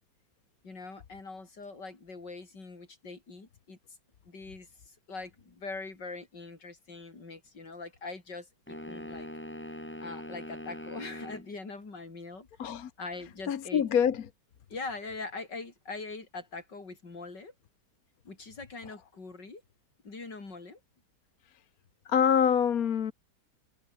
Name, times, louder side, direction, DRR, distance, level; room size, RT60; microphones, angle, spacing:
voice 1, 0.6-3.8 4.2-9.3 10.0-12.5 13.0-13.8 14.7-17.5 18.2-19.6 20.0-20.8, left 3 dB, 75° left, 5.0 m, -42 dB
sound 1, 8.7-11.5, left 1 dB, 5° left, 3.2 m, -42 dB
voice 2, 12.6-12.9 13.5-14.3 22.0-23.1, left 8 dB, 60° left, 1.5 m, -25 dB
omnidirectional pair, 1.9 m